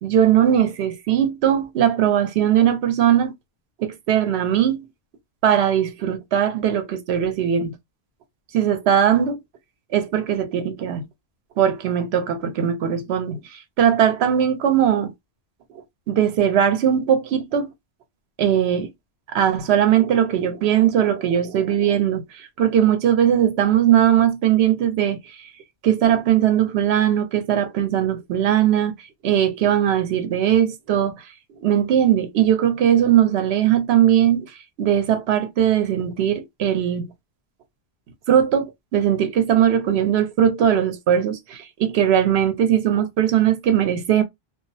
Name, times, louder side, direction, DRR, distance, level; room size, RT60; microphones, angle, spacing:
voice 1, 0.0-3.3 3.8-4.9 5.4-7.7 8.5-9.4 9.9-11.1 11.6-15.1 16.1-17.7 18.4-18.9 19.3-25.5 25.8-28.9 29.2-31.1 31.6-34.5 34.8-37.1 38.3-44.2, right 10 dB, 85° right, 0.9 m, -19 dB
2.3 x 2.1 x 2.5 m
omnidirectional pair, 1.1 m